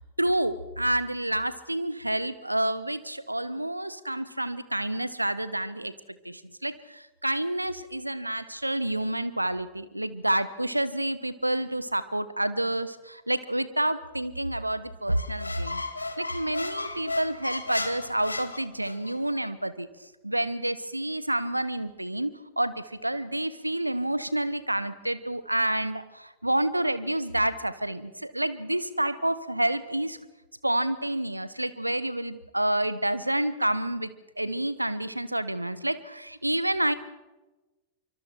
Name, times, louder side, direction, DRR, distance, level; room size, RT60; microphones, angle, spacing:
voice 1, 0.2-5.9 6.2-15.8 16.2-19.9 20.2-22.3 22.6-30.2 30.6-36.9, right 1 dB, 85° right, 16 dB, 1.1 m, -29 dB
Squeak, 15.1-19.2, left 2 dB, 80° left, 1.6 m, -35 dB
26.0 x 24.5 x 4.5 m, 1.1 s
figure-of-eight pair, 90°, 0 cm